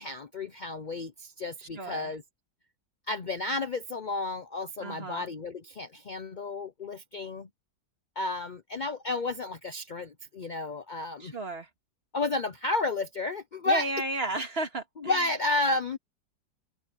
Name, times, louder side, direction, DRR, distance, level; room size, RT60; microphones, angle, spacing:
voice 1, 0.0-2.2 3.1-7.5 8.2-11.4 12.1-13.9 15.0-16.0, left 2 dB, 80° left, 0.4 m, -32 dB
voice 2, 1.8-2.1 4.8-5.2 11.2-11.7 13.7-15.1, right 2 dB, 35° right, 2.2 m, -33 dB
open air
omnidirectional pair, 1.9 m